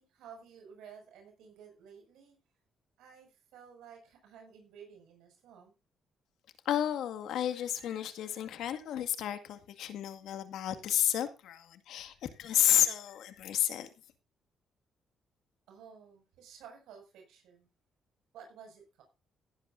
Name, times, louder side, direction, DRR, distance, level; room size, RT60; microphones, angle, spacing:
voice 1, 0.0-2.4 3.0-5.7 15.7-17.7 18.3-19.0, right 7 dB, 85° right, 6.0 m, -53 dB
voice 2, 6.7-13.9, left 11 dB, 80° left, 2.0 m, -31 dB
16.5 x 11.0 x 2.6 m
cardioid pair, 90°, 0 cm